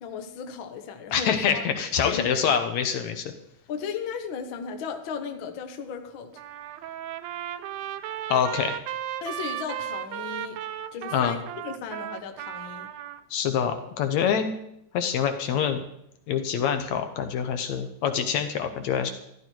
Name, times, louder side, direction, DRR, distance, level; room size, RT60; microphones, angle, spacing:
voice 1, 0.0-1.6 2.0-2.4 3.7-6.3 9.2-10.6 10.9-12.9, left 6 dB, 55° left, 6 dB, 1.5 m, -35 dB
voice 2, 1.1-3.3 8.3-8.8 11.1-11.4 13.3-14.5 14.9-15.8 16.3-19.1, left 8 dB, 70° left, 7 dB, 2.1 m, -25 dB
Trumpet, 6.4-13.2, right 11 dB, 90° right, 2.2 m, -35 dB
13.5 x 12.5 x 4.6 m, 0.74 s
omnidirectional pair, 3.5 m